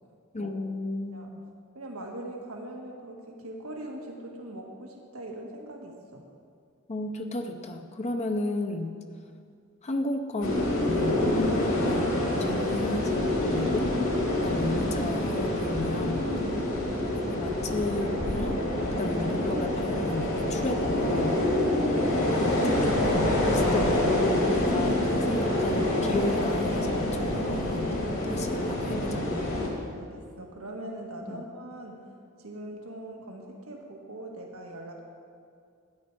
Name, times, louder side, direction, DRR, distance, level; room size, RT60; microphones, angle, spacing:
voice 1, 0.3-1.4 6.9-8.9 9.8-13.9 14.4-16.2 17.1-18.6 19.0-21.4 22.4-27.9 28.3-29.3 31.3-31.4, left 2 dB, 30° left, 5 dB, 0.6 m, -33 dB
voice 2, 1.7-6.3 16.4-16.8 30.0-32.1 32.4-35.0, right 1 dB, 90° right, 1 dB, 1.5 m, -41 dB
sound 1, 10.4-29.7, left 1 dB, 70° left, 2.6 m, -26 dB
13.0 x 9.9 x 4.7 m, 2.3 s
head